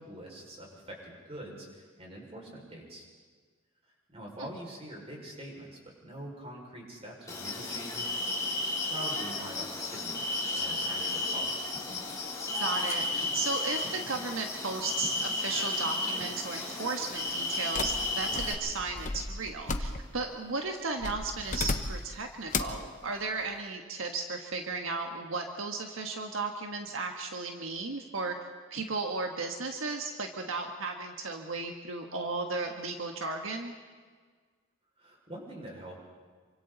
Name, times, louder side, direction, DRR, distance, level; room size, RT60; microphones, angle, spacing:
voice 1, 0.0-3.1 4.1-8.1 8.8-10.3 10.5-11.7 35.0-36.0, right 1 dB, 30° right, -2 dB, 5.7 m, -44 dB
sound 1, 7.3-18.5, left 2 dB, 15° left, 3.5 m, -33 dB
voice 2, 12.6-28.3 28.7-33.7, right 3 dB, 85° right, 3 dB, 1.5 m, -35 dB
sound 2, 17.7-20.3 21.0-22.1 22.5-22.9, left 3 dB, 40° left, 1.1 m, -34 dB
28.0 x 25.0 x 4.1 m, 1.5 s
head